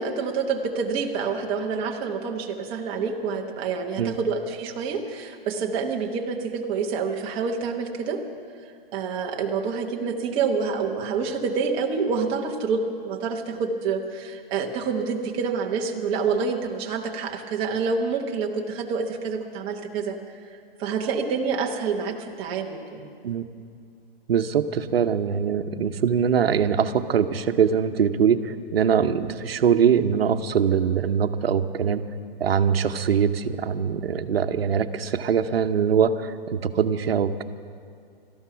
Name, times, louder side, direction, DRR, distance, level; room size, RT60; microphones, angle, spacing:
voice 1, 0.0-8.2 8.9-20.2 20.5-23.1, right 5 dB, 15° right, 1 dB, 1.0 m, -27 dB
voice 2, 24.3-32.0 32.4-37.4, right 7 dB, 80° right, 10 dB, 0.9 m, -22 dB
18.0 x 13.5 x 5.8 m, 2.3 s
hypercardioid pair, 160°, 30 cm